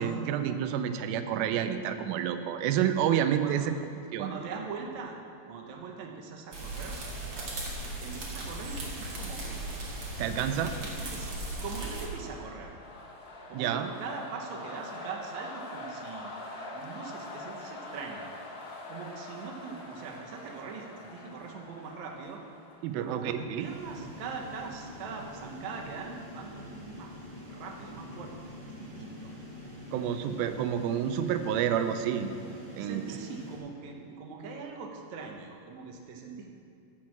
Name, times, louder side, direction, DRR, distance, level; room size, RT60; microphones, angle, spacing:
voice 1, 0.0-3.6 4.1-4.3 10.2-10.7 13.5-13.9 22.8-23.7 29.9-32.3 32.8-33.0, right 9 dB, 80° right, 9 dB, 2.4 m, -29 dB
voice 2, 4.2-5.2 5.5-7.0 8.0-9.6 10.6-11.3 11.6-12.7 13.5-16.4 16.7-18.3 18.9-22.4 22.9-27.1 27.4-29.3 32.8-36.5, right 5 dB, 65° right, 2 dB, 2.0 m, -42 dB
sound 1, 6.5-12.1, right 1 dB, 45° right, 2.3 m, -37 dB
sound 2, 8.7-25.1, left 2 dB, 60° left, 0.9 m, -46 dB
sound 3, 23.6-33.6, left 1 dB, 20° right, 2.5 m, -45 dB
11.5 x 6.3 x 7.4 m, 2.6 s
omnidirectional pair, 4.3 m